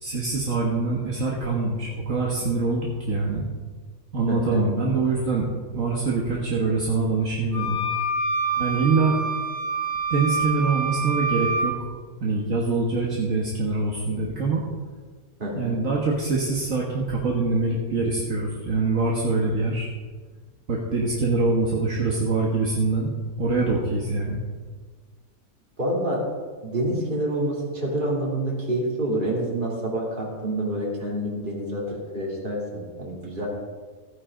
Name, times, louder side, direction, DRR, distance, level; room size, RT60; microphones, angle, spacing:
voice 1, 0.0-3.5 4.1-5.5 5.7-7.8 8.6-9.2 10.1-11.7 12.2-14.6 15.6-19.9 20.7-23.1 23.4-24.4, right 3 dB, 60° right, -3 dB, 1.8 m, -24 dB
voice 2, 4.3-4.6 15.4-15.8 25.8-26.2 26.6-33.5, right 1 dB, 35° right, -4 dB, 3.1 m, -27 dB
sound 1, 7.5-11.7, right 3 dB, 80° left, 4.8 m, -26 dB
15.5 x 9.7 x 3.8 m, 1.5 s
omnidirectional pair, 1.5 m